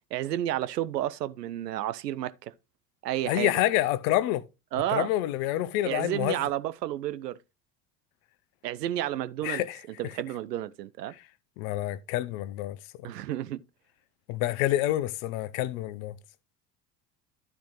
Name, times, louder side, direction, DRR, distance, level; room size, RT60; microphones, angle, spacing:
voice 1, 0.1-2.5 3.0-3.5 4.7-5.1 5.8-7.4 8.6-9.6 10.0-11.1 13.0-13.6, right 13 dB, 80° right, 0.7 m, -31 dB
voice 2, 3.3-4.4 4.9-6.4 9.4-9.8 10.0-10.1 11.1-11.2 11.6-12.8 14.3-16.1, left 14 dB, 60° left, 0.8 m, -28 dB
12.0 x 4.5 x 3.9 m
figure-of-eight pair, 65°, 48 cm